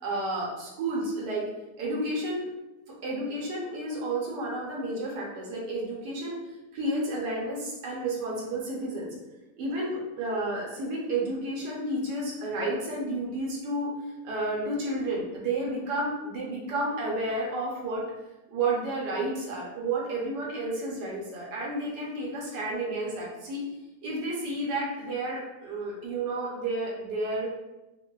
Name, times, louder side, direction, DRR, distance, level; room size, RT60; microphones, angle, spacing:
voice 1, 0.0-1.5 1.8-2.5 3.0-6.3 6.7-9.1 9.6-18.0 18.5-23.6 24.0-27.5, right 2 dB, 85° right, -4 dB, 1.2 m, -31 dB
2.6 x 2.5 x 2.2 m, 1.0 s
omnidirectional pair, 1.8 m